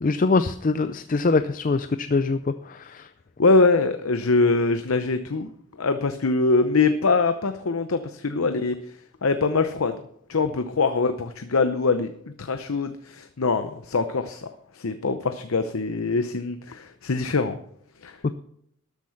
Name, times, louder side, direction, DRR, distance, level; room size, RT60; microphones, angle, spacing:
voice 1, 0.0-3.1, left 3 dB, 35° left, 12 dB, 0.4 m, -23 dB
voice 2, 3.4-5.5 5.8-8.8 9.2-10.0 10.3-12.1 12.4-14.5 14.7-17.6 18.0-18.2, left 3 dB, 70° left, 9 dB, 0.7 m, -23 dB
12.5 x 8.4 x 5.8 m, 0.72 s
head